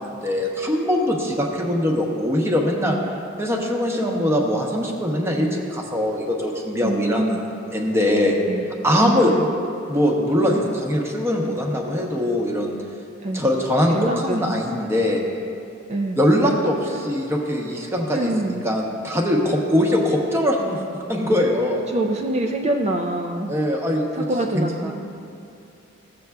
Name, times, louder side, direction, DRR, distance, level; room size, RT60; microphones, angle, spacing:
voice 1, 0.0-3.0 3.4-8.4 8.8-9.3 9.9-12.8 13.3-15.2 16.2-20.8 21.1-21.8 23.5-24.0 24.5-24.9, left 1 dB, 10° right, 0 dB, 0.8 m, -22 dB
voice 2, 6.8-7.4 8.5-8.6 9.0-9.5 10.4-10.7 13.2-13.5 13.9-14.6 15.9-16.2 16.8-17.1 18.1-18.6 21.9-23.5 24.1-24.9, right 1 dB, 30° right, 1 dB, 0.4 m, -25 dB
14.5 x 7.7 x 2.3 m, 2.7 s
head